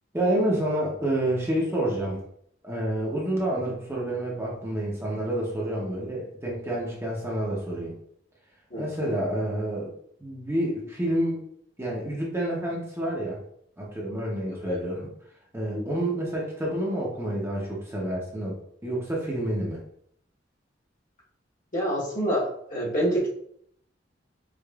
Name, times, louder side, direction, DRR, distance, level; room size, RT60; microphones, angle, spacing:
voice 1, 0.1-2.2 2.6-7.9 8.8-9.9 10.2-11.4 11.8-13.4 13.8-15.1 15.5-19.8, right 1 dB, 15° right, -4 dB, 0.7 m, -28 dB
voice 2, 8.7-9.1 14.6-14.8 15.7-15.8 21.7-23.3, right 1 dB, 45° left, -5 dB, 1.2 m, -27 dB
4.8 x 2.5 x 2.3 m, 0.68 s
head